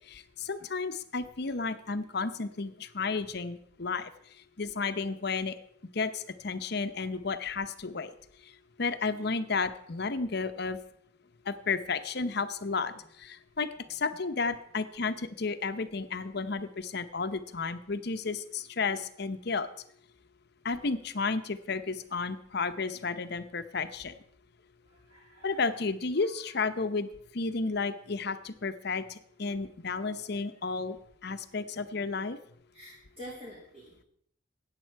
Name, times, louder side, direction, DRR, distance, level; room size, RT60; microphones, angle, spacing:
voice 1, 0.1-4.1 4.6-5.5 5.9-8.1 8.8-10.8 11.5-19.7 20.6-24.1 25.4-31.0 31.2-32.4, left 4 dB, 55° left, 11 dB, 0.8 m, -32 dB
voice 2, 25.1-25.6 30.2-30.3 32.7-34.0, equal, 35° right, -5 dB, 2.7 m, -47 dB
14.0 x 9.0 x 4.6 m, 0.66 s
head